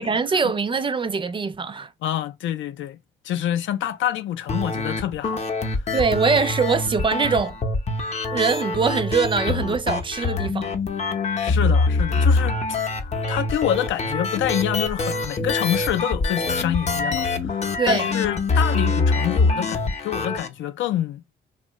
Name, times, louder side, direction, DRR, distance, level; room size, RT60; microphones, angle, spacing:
voice 1, 0.0-1.9 5.9-7.6 8.3-10.7 17.8-18.1, right 5 dB, 25° right, 0.3 m, -22 dB
voice 2, 2.0-3.0 3.2-5.8 11.4-12.8 13.3-21.2, left 11 dB, 75° left, 0.5 m, -27 dB
sound 1, 4.5-20.5, left 3 dB, 35° left, 0.6 m, -24 dB
2.7 x 2.2 x 2.9 m
cardioid pair, 90°, 20 cm